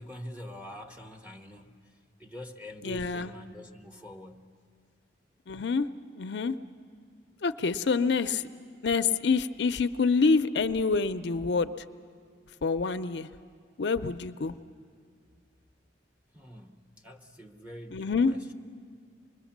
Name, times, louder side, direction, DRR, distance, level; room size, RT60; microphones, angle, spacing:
voice 1, 0.0-4.5 16.3-18.4, equal, 5° right, 2 dB, 1.0 m, -45 dB
voice 2, 2.8-3.3 5.5-5.9 6.1-6.6 7.4-8.5 8.8-11.7 12.6-13.3 13.8-14.5 17.9-18.3, left 4 dB, 65° left, 11 dB, 0.5 m, -26 dB
25.5 x 21.0 x 7.2 m, 2.1 s
head